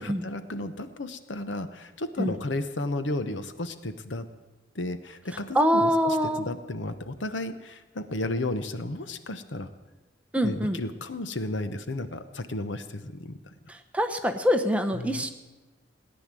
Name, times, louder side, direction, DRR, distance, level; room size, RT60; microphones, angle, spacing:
voice 1, 0.0-4.3 4.7-9.7 10.4-13.4 14.9-15.2, left 2 dB, 70° left, 10 dB, 1.0 m, -33 dB
voice 2, 5.5-6.5 10.3-10.8 13.9-15.3, equal, 5° right, 7 dB, 1.0 m, -24 dB
18.0 x 10.0 x 7.6 m, 1.1 s
head